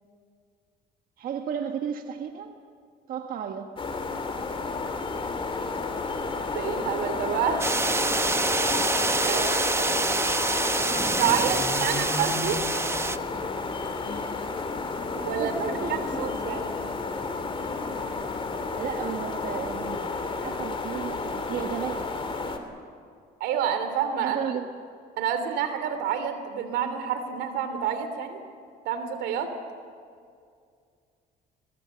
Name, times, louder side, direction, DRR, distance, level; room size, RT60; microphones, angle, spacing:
voice 1, 1.2-2.5 3.1-3.7 9.3-10.0 11.4-12.0 14.0-14.3 15.1-16.0 18.7-20.1 20.4-22.1 24.2-24.7, right 8 dB, 60° right, 5 dB, 1.4 m, -34 dB
sound 1, 3.8-22.6, left 3 dB, 30° left, 2.9 m, -31 dB
voice 2, 6.5-7.7 9.2-9.4 11.2-12.6 15.2-16.8 23.4-24.4 25.2-28.4 28.8-29.5, right 8 dB, 90° right, 9 dB, 3.0 m, -28 dB
sound 2, 7.6-13.2, right 3 dB, 15° right, 0.8 m, -26 dB
22.0 x 22.0 x 7.9 m, 2.2 s
cardioid pair, 110°, 17 cm